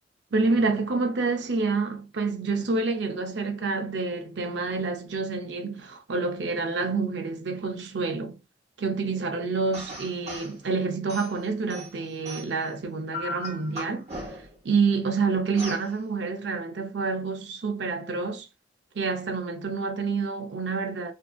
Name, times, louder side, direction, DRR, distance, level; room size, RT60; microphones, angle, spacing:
voice 1, 0.3-8.4 8.8-14.4 14.6-18.5 18.9-21.1, right 4 dB, 80° right, 0.6 m, -28 dB
sound 1, 9.7-10.5 11.1-12.7 13.1-14.6 15.6-15.9, equal, 40° right, 1.0 m, -37 dB
2.6 x 2.5 x 2.3 m
head